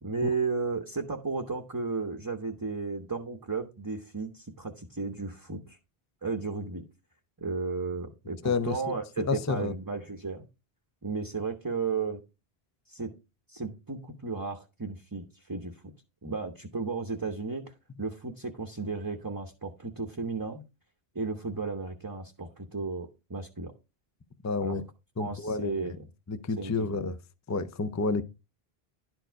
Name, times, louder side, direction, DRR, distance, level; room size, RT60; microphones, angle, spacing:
voice 1, 0.0-5.8 6.2-6.8 7.4-10.4 11.0-12.2 12.9-13.1 13.5-15.9 16.2-17.7 18.0-20.6 21.1-23.7 24.6-24.7 25.2-26.0 26.6-26.7, right 4 dB, 20° right, 0.8 m, -34 dB
voice 2, 8.4-9.7 24.4-24.8 25.2-25.9 26.3-27.2 27.5-28.2, left 4 dB, 25° left, 0.5 m, -30 dB
11.5 x 4.6 x 4.6 m
omnidirectional pair, 1.0 m